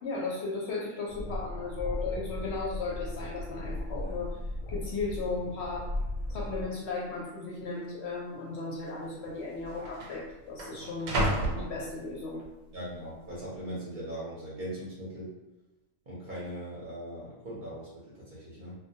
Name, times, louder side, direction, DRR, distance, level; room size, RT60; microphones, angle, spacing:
voice 1, 0.0-4.4 4.7-5.9 6.3-12.4, left 3 dB, 65° left, -3 dB, 0.8 m, -36 dB
sound 1, 1.1-6.7, left 1 dB, 85° left, 1.0 m, -36 dB
sound 2, 3.7-3.8 4.0-4.4 5.1-5.2 6.0-6.5 6.8-6.9 7.7-7.9 8.9-9.0 9.2-12.5 12.9-13.4, right 1 dB, 85° right, 1.0 m, -34 dB
voice 2, 12.7-15.3 16.1-17.9 18.3-18.7, right 1 dB, 50° right, -7 dB, 0.7 m, -39 dB
2.2 x 2.1 x 2.6 m, 1.0 s
omnidirectional pair, 1.3 m